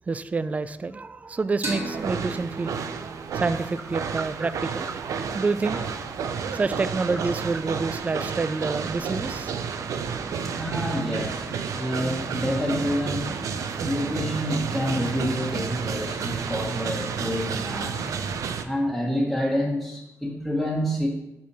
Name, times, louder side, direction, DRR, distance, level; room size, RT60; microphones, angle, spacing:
voice 1, 0.1-4.9 5.3-10.3, right 4 dB, 25° right, 13 dB, 0.3 m, -29 dB
sound 1, 1.6-5.0, right 2 dB, 55° right, 2.3 m, -37 dB
sound 2, 1.7-18.6, right 6 dB, 90° right, 0.5 m, -31 dB
voice 2, 6.2-6.6 9.7-18.3 18.6-21.1, equal, 5° right, -5 dB, 1.2 m, -29 dB
5.7 x 4.4 x 6.1 m, 0.94 s
cardioid pair, 95°, 5 cm